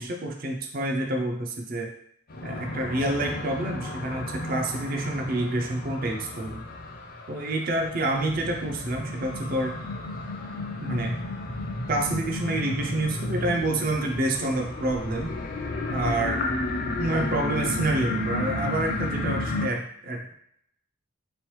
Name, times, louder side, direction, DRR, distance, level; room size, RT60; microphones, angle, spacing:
voice 1, 0.0-1.9 2.4-6.6 7.3-9.8 10.8-11.2 11.9-15.3 15.9-16.5 17.0-20.3, right 1 dB, 40° right, 2 dB, 0.5 m, -28 dB
sound 1, 2.3-19.7, left 2 dB, 45° left, 0.4 m, -32 dB
3.8 x 3.1 x 3.1 m, 0.70 s
head